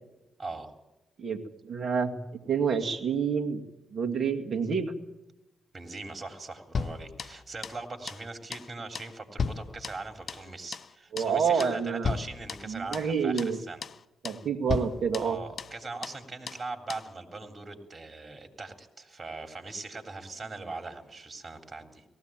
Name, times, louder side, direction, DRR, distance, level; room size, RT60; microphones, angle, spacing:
voice 1, 0.4-0.7 5.7-13.8 15.2-22.0, right 3 dB, 40° right, 6 dB, 3.4 m, -40 dB
voice 2, 1.2-2.2 2.5-3.6 3.9-4.9 11.1-12.2 12.7-13.6 14.2-15.4, right 6 dB, 60° right, 6 dB, 2.3 m, -28 dB
sound 1, 6.7-7.8 8.1-8.3 8.5-8.7 8.9-10.5 10.7-10.9 11.2-11.3 11.6-11.8 12.0-13.1 13.4-13.5 13.8-14.0 14.2-14.4 14.7-16.2 16.5-16.6 16.9-17.1, left 5 dB, 55° left, 0.8 m, -35 dB
19.0 x 15.5 x 9.0 m, 0.97 s
hypercardioid pair, 45°, 0 cm